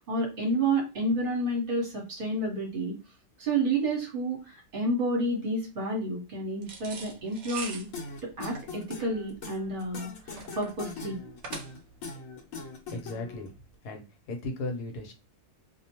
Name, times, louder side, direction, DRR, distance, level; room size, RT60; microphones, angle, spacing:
voice 1, 0.1-2.9 3.4-7.9 8.2-11.2, right 1 dB, 40° right, -1 dB, 1.1 m, -30 dB
sound 1, 6.6-12.1, right 4 dB, 60° right, 0.8 m, -43 dB
sound 2, 7.9-13.5, left 4 dB, 60° left, 1.1 m, -41 dB
voice 2, 12.9-13.5 13.8-15.1, left 2 dB, 80° left, 4 dB, 1.3 m, -36 dB
2.7 x 2.2 x 2.9 m, 0.27 s
omnidirectional pair, 1.7 m